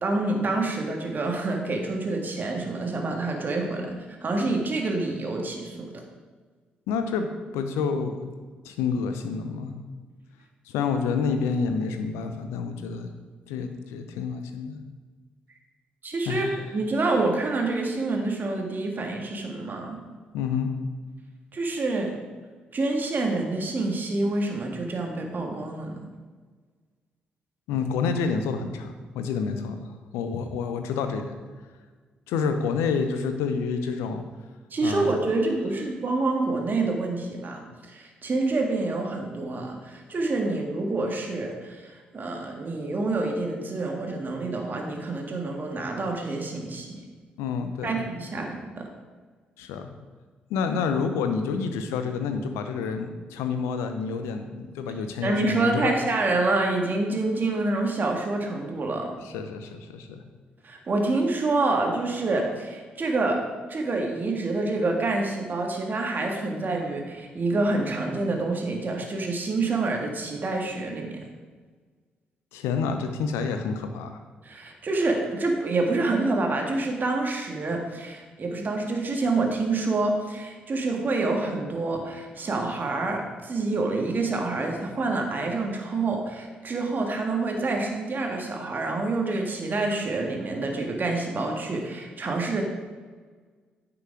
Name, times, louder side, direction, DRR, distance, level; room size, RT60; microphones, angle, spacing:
voice 1, 0.0-4.0 4.2-5.9 16.0-20.0 21.5-22.1 22.7-26.0 34.7-46.9 47.8-48.9 55.2-59.1 60.6-63.4 63.7-71.2 74.4-92.6, right 2 dB, 45° right, 2 dB, 1.8 m, -27 dB
voice 2, 6.9-7.3 7.5-8.3 8.6-9.8 10.7-13.1 13.5-14.8 16.3-16.6 20.3-20.7 27.7-29.8 30.1-31.2 32.3-34.3 34.8-35.2 47.4-48.0 49.6-49.9 50.5-55.9 59.2-60.2 72.5-74.2, left 5 dB, 75° left, 7 dB, 0.8 m, -28 dB
9.5 x 6.0 x 5.0 m, 1.5 s
hypercardioid pair, 40°, 5 cm